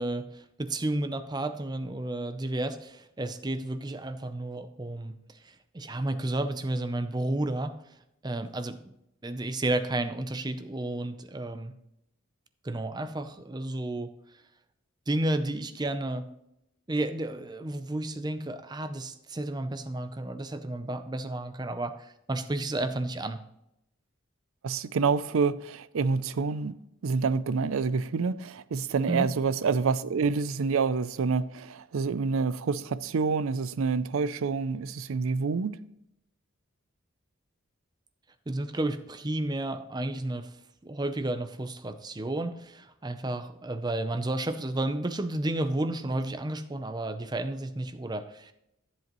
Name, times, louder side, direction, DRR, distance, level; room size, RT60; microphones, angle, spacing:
voice 1, 0.0-5.1 5.4-7.7 8.2-8.9 9.2-11.7 12.6-14.1 15.1-16.3 16.9-23.4 29.1-29.3 38.5-40.5 40.8-48.5, right 1 dB, 20° right, 0.5 m, -32 dB
voice 2, 24.6-26.8 27.0-35.8, right 5 dB, 80° right, 0.4 m, -27 dB
13.5 x 7.7 x 3.1 m
head